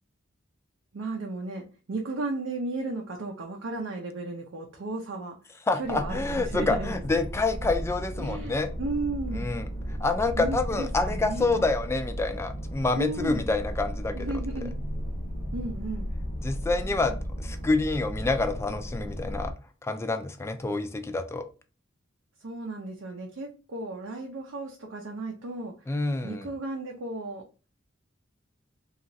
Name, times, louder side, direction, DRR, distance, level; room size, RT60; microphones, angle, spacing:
voice 1, 0.9-5.4 5.8-7.4 8.2-9.5 10.4-11.6 12.9-13.5 14.1-14.7 15.5-16.1 22.4-25.7 26.2-27.4, right 2 dB, 75° right, 1 dB, 0.5 m, -34 dB
voice 2, 5.7-8.7 9.3-14.3 16.4-19.5 19.8-21.4 25.9-26.5, left 3 dB, 15° left, 8 dB, 0.3 m, -27 dB
sound 1, 5.8-19.5, equal, 55° left, 0.7 m, -35 dB
2.9 x 2.4 x 2.6 m, 0.35 s
head